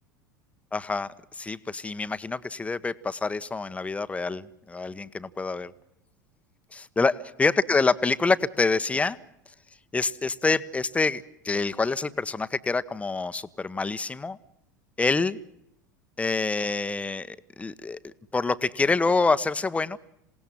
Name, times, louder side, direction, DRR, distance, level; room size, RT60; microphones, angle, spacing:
voice 1, 0.7-5.7 6.7-9.2 9.9-14.4 15.0-15.4 16.2-20.0, left 3 dB, 10° left, 13 dB, 1.1 m, -26 dB
27.5 x 18.0 x 7.6 m, 0.80 s
figure-of-eight pair, 80°, 10 cm